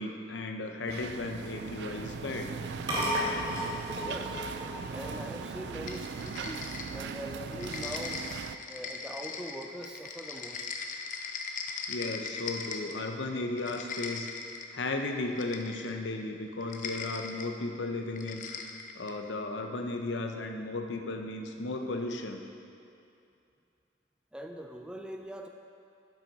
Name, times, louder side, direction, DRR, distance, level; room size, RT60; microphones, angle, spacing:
voice 1, 0.0-2.5 11.9-14.3 14.7-18.4 18.9-22.4, left 2 dB, 85° left, 4 dB, 0.8 m, -35 dB
sound 1, 0.8-6.3, equal, 25° right, 1.9 m, -36 dB
sound 2, 0.9-8.6, right 5 dB, 65° right, 0.3 m, -39 dB
voice 2, 3.9-4.4 4.9-8.3 8.7-10.7 24.3-25.5, equal, 5° right, 3 dB, 0.4 m, -42 dB
sound 3, 5.9-7.2 7.5-13.1 13.5-14.7 15.3-16.0 16.6-17.5 18.2-19.2, left 5 dB, 45° left, 0.6 m, -40 dB
7.7 x 7.6 x 5.3 m, 2.6 s
head